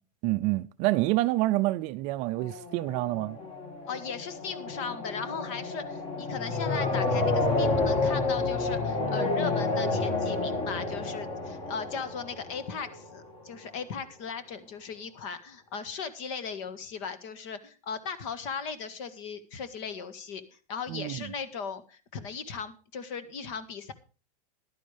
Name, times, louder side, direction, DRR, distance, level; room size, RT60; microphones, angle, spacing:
voice 1, 0.2-3.4 20.9-21.2, right 18 dB, 35° right, 0.5 m, -27 dB
sound 1, 2.4-13.2, left 3 dB, 25° left, 2.1 m, -30 dB
voice 2, 3.9-20.4 20.7-23.9, left 5 dB, 50° left, 1.7 m, -37 dB
15.0 x 11.5 x 3.4 m
supercardioid pair, 150°, 20 cm